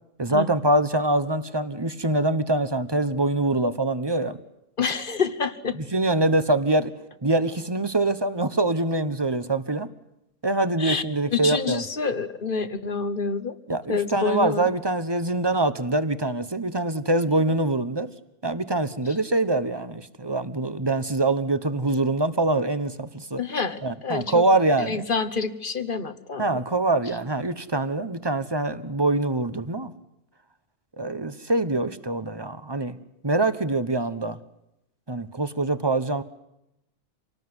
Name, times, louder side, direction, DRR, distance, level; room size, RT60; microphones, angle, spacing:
voice 1, 0.2-4.4 5.9-6.9 7.2-9.9 10.4-11.8 13.7-18.1 18.4-23.4 23.8-25.0 26.4-29.9 31.0-33.0 33.2-34.4 35.1-36.2, right 2 dB, 20° right, 12 dB, 1.0 m, -24 dB
voice 2, 4.8-5.8 10.8-11.0 11.3-13.5 13.9-14.7 23.4-24.4 24.8-26.6, left 5 dB, 40° left, 12 dB, 1.4 m, -27 dB
26.5 x 19.0 x 9.8 m, 0.87 s
omnidirectional pair, 1.5 m